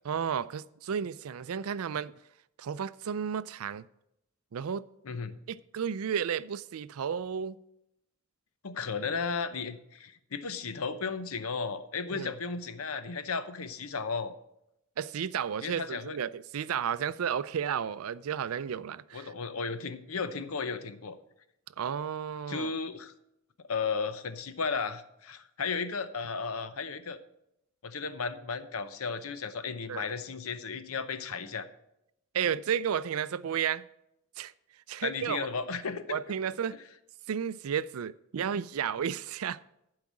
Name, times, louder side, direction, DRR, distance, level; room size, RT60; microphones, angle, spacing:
voice 1, 0.0-2.2 2.6-3.9 4.5-4.8 5.5-7.6 12.1-12.3 15.0-19.3 21.8-22.7 29.9-30.1 32.3-33.9 34.4-34.5 34.9-35.5 36.1-36.8 37.3-39.6, right 8 dB, 80° right, 0.4 m, -32 dB
voice 2, 5.0-5.3 8.6-14.3 15.6-16.2 19.1-21.2 22.5-23.1 23.7-27.2 27.8-31.7 35.0-36.2, left 5 dB, 80° left, 0.8 m, -34 dB
11.5 x 4.8 x 7.3 m
head